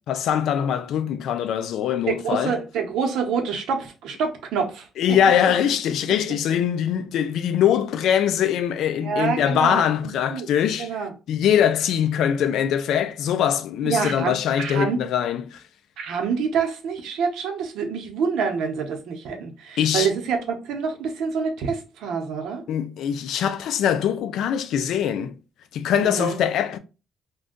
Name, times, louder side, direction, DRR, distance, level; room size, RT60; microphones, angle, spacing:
voice 1, 0.1-2.6 5.0-10.9 11.3-15.6 19.8-20.1 22.7-25.4 25.7-26.8, left 9 dB, 70° left, 0.3 m, -22 dB
voice 2, 2.1-5.2 9.0-10.5 10.8-11.1 13.8-15.0 16.0-22.6 26.0-26.4, right 6 dB, 80° right, 0.8 m, -27 dB
2.6 x 2.2 x 3.6 m
cardioid pair, 165°, 0 cm